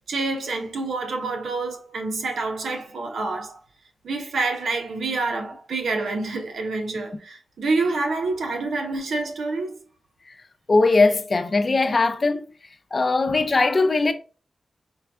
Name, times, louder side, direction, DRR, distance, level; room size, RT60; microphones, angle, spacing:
voice 1, 0.1-3.6 4.0-9.7 11.8-11.9, right 3 dB, 85° right, 0.8 m, -27 dB
voice 2, 10.7-12.4 12.9-14.1, left 3 dB, 50° left, 0.6 m, -20 dB
4.5 x 2.3 x 3.5 m
cardioid pair, 55°, 0 cm